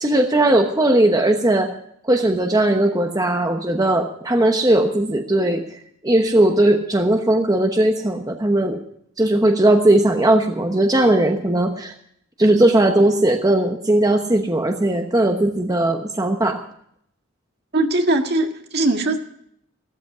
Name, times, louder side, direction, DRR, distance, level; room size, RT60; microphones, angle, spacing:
voice 1, 0.0-1.7 2.0-5.6 6.0-8.8 9.2-11.9 12.4-16.6, right 1 dB, 20° right, 4 dB, 1.0 m, -18 dB
voice 2, 17.7-19.2, right 2 dB, 55° right, 4 dB, 1.8 m, -20 dB
15.5 x 14.0 x 4.9 m, 0.69 s
head